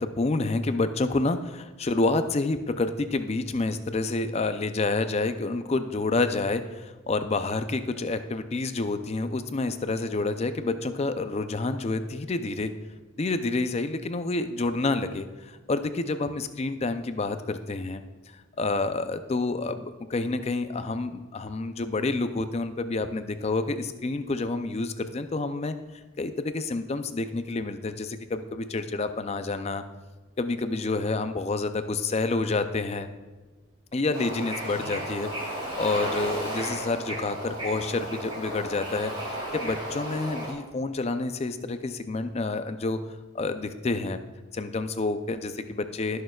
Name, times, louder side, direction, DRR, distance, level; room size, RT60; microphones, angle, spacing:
voice 1, 0.0-12.7 13.2-18.0 18.3-25.7 26.2-29.8 30.4-33.1 33.9-35.3 35.8-39.1 39.5-43.0 43.3-44.2 44.5-46.2, left 3 dB, 30° left, 10 dB, 0.4 m, -28 dB
Bird / Ocean, 34.1-40.5, right 1 dB, 25° right, 2.8 m, -34 dB
17.0 x 6.5 x 2.3 m, 1.3 s
head